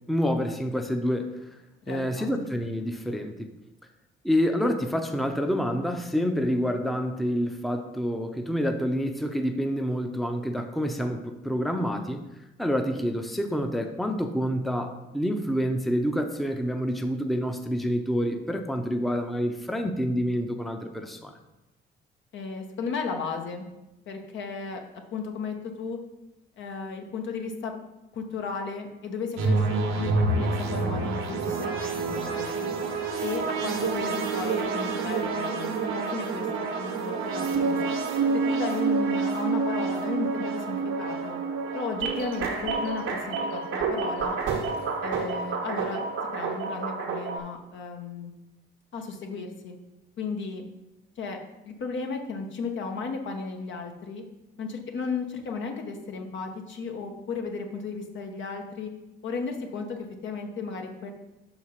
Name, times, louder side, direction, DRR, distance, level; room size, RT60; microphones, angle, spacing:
voice 1, 0.1-1.3 1.9-3.5 4.2-12.2 12.6-21.4, equal, ahead, 5 dB, 0.7 m, -27 dB
voice 2, 1.8-2.3 22.3-23.7 24.1-24.8 25.1-26.0 26.6-27.7 28.1-32.8 33.2-38.0 38.3-41.4 41.7-44.4 45.0-46.0 46.3-48.3 48.9-49.8 50.2-50.6 51.2-51.4 51.6-54.2 54.6-58.9 59.2-61.1, left 4 dB, 70° left, 3 dB, 1.2 m, -34 dB
sound 1, 29.4-47.4, right 4 dB, 85° right, 1.1 m, -28 dB
5.7 x 4.7 x 5.7 m, 0.97 s
cardioid pair, 90°, 20 cm